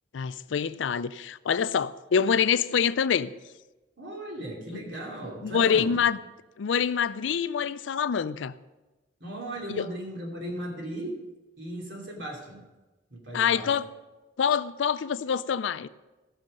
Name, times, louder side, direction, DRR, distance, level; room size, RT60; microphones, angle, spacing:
voice 1, 0.1-3.3 5.4-6.2 6.6-8.6 9.8-9.9 13.3-13.8 14.4-15.9, left 7 dB, 85° left, 0.4 m, -25 dB
voice 2, 4.0-6.0 9.2-11.2 11.6-12.6 13.1-13.8, right 1 dB, 80° right, 2.9 m, -37 dB
15.0 x 6.5 x 5.3 m
head